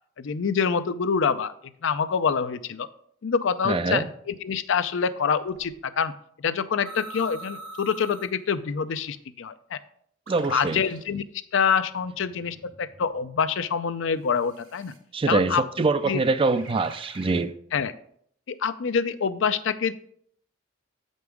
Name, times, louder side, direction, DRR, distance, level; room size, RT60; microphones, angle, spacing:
voice 1, 0.2-1.5 1.8-2.9 3.2-9.8 10.5-11.2 11.5-14.9 15.3-15.6 16.1-16.2 17.7-17.9 18.5-19.9, left 6 dB, 70° left, 0.5 m, -26 dB
voice 2, 3.6-4.1 10.3-10.8 15.1-17.5, right 3 dB, 25° right, 0.4 m, -24 dB
sound 1, 5.5-5.7 6.8-8.4 9.0-9.1 10.3-11.1 11.8-13.6 14.4-15.0 15.8-17.5, right 2 dB, 80° right, 1.6 m, -44 dB
7.8 x 5.3 x 4.8 m
head